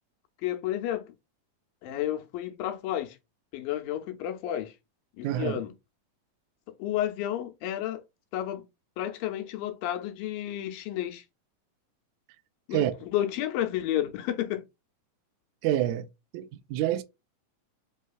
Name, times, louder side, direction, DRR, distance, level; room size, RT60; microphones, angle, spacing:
voice 1, 0.4-1.1 1.8-3.2 3.5-4.7 5.2-5.7 6.8-8.0 8.3-8.6 9.0-11.2 12.7-14.7, left 12 dB, 85° left, 2.5 m, -31 dB
voice 2, 5.2-5.6 12.7-12.9 15.6-16.1 16.3-17.0, right 12 dB, 85° right, 1.6 m, -27 dB
5.5 x 3.2 x 2.3 m
omnidirectional pair, 4.0 m